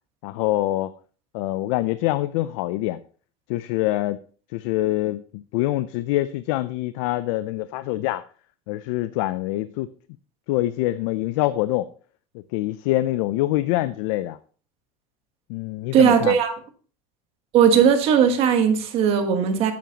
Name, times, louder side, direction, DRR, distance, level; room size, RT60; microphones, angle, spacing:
voice 1, 0.2-0.9 1.3-3.0 3.5-4.2 4.5-8.2 8.7-9.9 10.5-11.9 12.3-14.4 15.5-16.4, left 16 dB, 80° left, 0.5 m, -25 dB
voice 2, 15.9-16.5 17.5-19.7, right 8 dB, 40° right, 1.3 m, -18 dB
9.3 x 8.7 x 2.9 m
cardioid pair, 180°, 15 cm